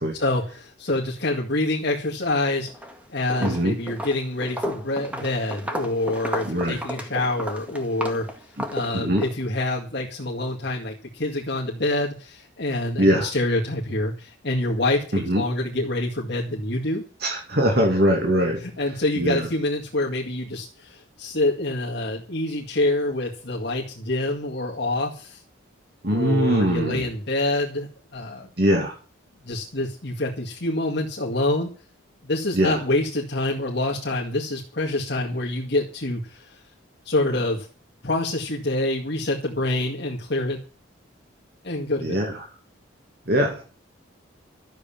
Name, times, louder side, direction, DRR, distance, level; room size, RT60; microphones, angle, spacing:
voice 1, 0.1-2.7 3.1-8.3 8.7-17.1 18.6-25.4 26.1-28.5 29.4-31.7 32.2-36.6 37.1-37.7 38.0-40.6 41.6-42.2, left 2 dB, 55° left, -2 dB, 2.1 m, -26 dB
Walk footsteps, 2.7-3.0 3.3-9.3, equal, 5° right, 1.9 m, -33 dB
voice 2, 3.4-3.8 6.4-6.8 8.9-9.2 13.0-13.3 15.1-15.4 17.2-18.7 19.2-19.5 26.0-27.1 28.6-28.9 32.5-32.8 42.0-42.5 43.3-43.6, equal, 50° right, 1 dB, 2.5 m, -22 dB
13.0 x 7.2 x 8.8 m, 0.37 s
head